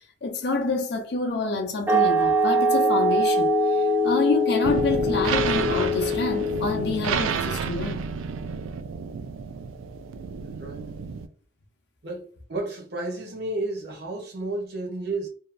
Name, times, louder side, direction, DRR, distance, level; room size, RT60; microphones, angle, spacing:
voice 1, 0.2-8.1, left 3 dB, 60° left, 0.5 m, -27 dB
sound 1, 1.9-7.3, equal, 10° right, 0.4 m, -23 dB
sound 2, 4.6-11.3, right 6 dB, 90° right, 0.3 m, -30 dB
voice 2, 10.4-10.9 12.0-15.3, right 2 dB, 55° right, 0.7 m, -32 dB
2.7 x 2.2 x 2.4 m
head